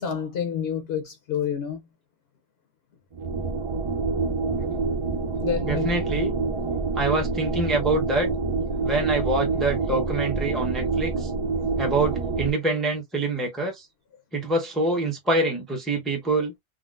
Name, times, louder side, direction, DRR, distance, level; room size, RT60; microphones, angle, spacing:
voice 1, 0.0-1.8 5.4-5.9, left 8 dB, 65° left, 0.9 m, -28 dB
sound 1, 3.1-12.5, right 3 dB, 55° right, 0.3 m, -27 dB
voice 2, 5.7-6.3 6.9-8.3 8.8-11.3 11.8-13.9 14.3-16.5, right 2 dB, ahead, 0.7 m, -25 dB
3.8 x 2.0 x 2.4 m
omnidirectional pair, 1.2 m